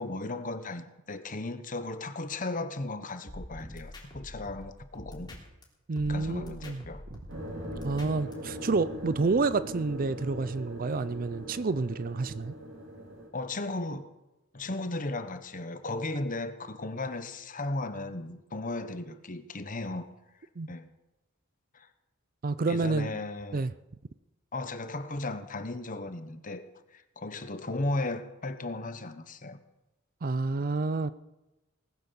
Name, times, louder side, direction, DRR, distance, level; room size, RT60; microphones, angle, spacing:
voice 1, 0.0-5.4 6.1-7.1 7.9-8.0 13.3-14.1 14.5-20.1 20.7-20.9 21.7-21.9 22.7-23.6 24.5-29.6, left 2 dB, 40° left, 1.1 m, -36 dB
sound 1, 3.3-5.6 6.0-8.3, left 1 dB, 20° left, 3.7 m, -45 dB
voice 2, 5.9-6.8 7.8-12.5 20.6-20.7 22.4-23.1 23.5-23.7 30.2-31.1, right 3 dB, 40° right, 0.5 m, -29 dB
sound 2, 7.3-13.3, equal, 65° right, 3.9 m, -41 dB
19.0 x 9.7 x 7.1 m
head